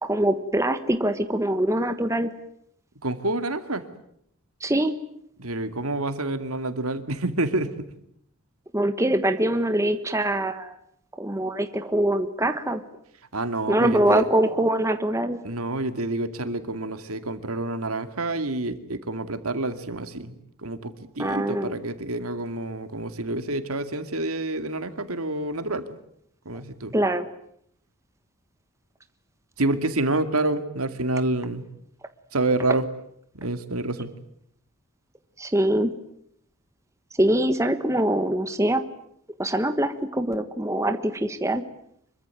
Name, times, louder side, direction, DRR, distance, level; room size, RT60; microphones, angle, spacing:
voice 1, 0.0-2.3 4.6-5.0 8.7-10.8 11.2-12.8 13.7-15.4 21.2-21.7 26.9-27.3 35.4-35.9 37.2-38.8 39.4-41.6, right 1 dB, 15° right, 9 dB, 1.3 m, -23 dB
voice 2, 3.0-3.9 5.4-7.7 13.3-14.2 15.4-20.3 20.6-25.8 26.5-26.9 29.6-31.7 32.3-32.8 33.4-34.1, right 2 dB, 80° right, 9 dB, 2.4 m, -28 dB
26.0 x 23.0 x 9.3 m, 0.71 s
head